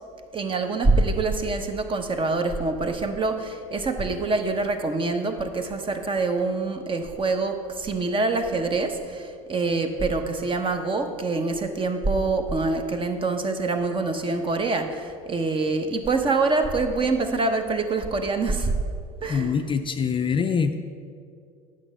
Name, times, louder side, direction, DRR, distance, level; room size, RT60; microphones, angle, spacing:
voice 1, 0.3-18.7 19.2-19.5, right 3 dB, 30° right, 6 dB, 0.9 m, -25 dB
voice 2, 19.3-20.8, left 6 dB, 30° left, 7 dB, 0.5 m, -24 dB
8.9 x 6.4 x 5.4 m, 2.3 s
hypercardioid pair, 80°, 18 cm